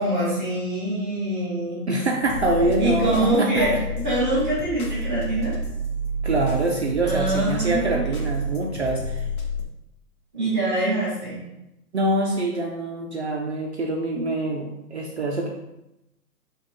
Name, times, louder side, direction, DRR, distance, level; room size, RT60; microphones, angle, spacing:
voice 1, 0.0-1.8 2.8-5.5 7.0-8.0 10.3-11.4, right 2 dB, 5° left, -9 dB, 0.7 m, -24 dB
voice 2, 1.9-3.8 6.2-9.3 11.9-15.5, right 2 dB, 50° right, -1 dB, 0.4 m, -25 dB
sound 1, 2.2-9.6, equal, 65° left, 1.1 m, -29 dB
4.3 x 2.9 x 3.6 m, 0.90 s
hypercardioid pair, 175°, 46 cm